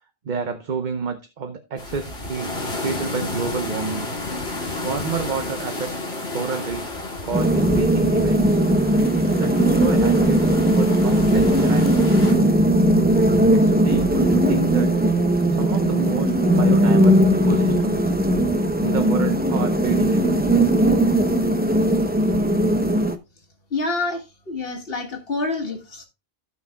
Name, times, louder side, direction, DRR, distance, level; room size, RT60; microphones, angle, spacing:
voice 1, 0.2-2.6 2.8-4.1 4.8-8.6 9.4-12.6 13.5-14.9 15.6-18.1 18.8-20.4, right 5 dB, 50° right, 0.9 m, -29 dB
sound 1, 1.8-12.3, left 2 dB, 85° left, 2.6 m, -32 dB
sound 2, 7.3-23.2, right 1 dB, 10° right, 0.7 m, -18 dB
voice 2, 23.7-26.0, left 3 dB, 65° left, 2.0 m, -27 dB
16.5 x 5.7 x 2.2 m
omnidirectional pair, 1.1 m